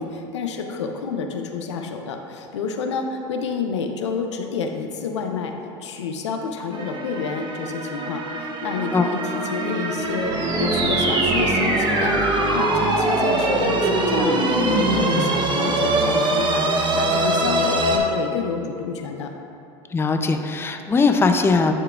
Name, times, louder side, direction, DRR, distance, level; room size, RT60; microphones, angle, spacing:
voice 1, 0.0-5.5 5.8-9.2 9.5-12.2 12.5-19.3, left 5 dB, 90° left, 4 dB, 0.6 m, -29 dB
sound 1, 6.7-18.0, right 2 dB, 35° right, 0.8 m, -23 dB
sound 2, 10.3-15.4, right 2 dB, 60° right, 1.3 m, -24 dB
voice 2, 19.9-21.7, left 4 dB, 15° left, 6 dB, 0.5 m, -19 dB
11.0 x 4.7 x 2.4 m, 2.7 s
hypercardioid pair, 85°, 14 cm